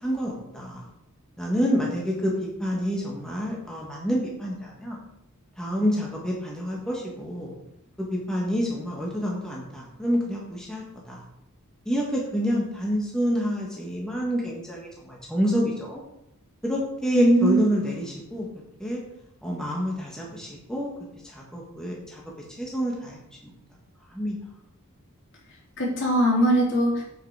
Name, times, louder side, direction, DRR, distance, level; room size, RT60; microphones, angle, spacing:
voice 1, 0.0-0.8 1.4-5.0 5.6-7.5 8.0-11.2 11.8-16.0 16.6-18.5 18.8-19.0 19.4-20.9 21.3-22.2 22.6-23.2 24.1-24.4, equal, 5° left, -3 dB, 1.6 m, -28 dB
voice 2, 17.1-17.6 25.8-27.0, right 1 dB, 55° left, -4 dB, 3.5 m, -20 dB
8.1 x 7.6 x 4.9 m, 0.81 s
head